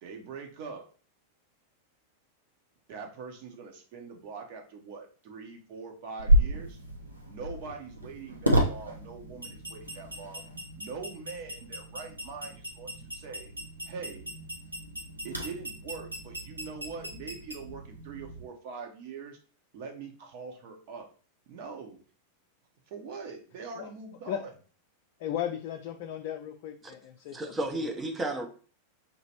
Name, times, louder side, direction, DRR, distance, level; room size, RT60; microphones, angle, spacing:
voice 1, 0.0-0.8 2.9-6.8 7.3-10.4 10.8-13.5 13.8-14.3 15.2-19.4 19.7-21.1 21.5-22.0 22.9-24.5, right 5 dB, 50° right, 0.9 m, -43 dB
sound 1, 6.2-18.4, equal, 85° right, 0.7 m, -32 dB
voice 2, 25.2-27.4, left 10 dB, 50° left, 0.4 m, -35 dB
voice 3, 27.3-28.5, right 1 dB, 15° right, 0.7 m, -32 dB
5.3 x 3.0 x 2.9 m
figure-of-eight pair, 90°, 0 cm